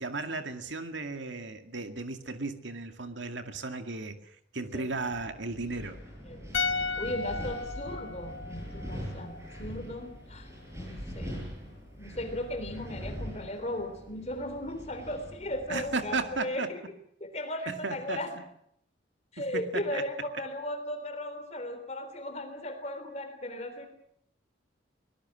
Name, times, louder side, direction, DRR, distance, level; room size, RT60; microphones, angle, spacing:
voice 1, 0.0-6.0 15.7-16.7 17.7-18.2 19.4-20.0, right 3 dB, 75° right, 7 dB, 2.1 m, -35 dB
Wind, 4.9-16.4, equal, 15° right, 7.9 m, -42 dB
sound 1, 6.5-9.8 10.0-10.2, left 4 dB, 85° left, 0.9 m, -35 dB
voice 2, 7.0-10.5 10.7-11.4 12.0-16.8 17.2-18.4 19.3-23.9, left 1 dB, 35° left, 8 dB, 3.3 m, -36 dB
24.0 x 20.0 x 7.5 m, 0.70 s
head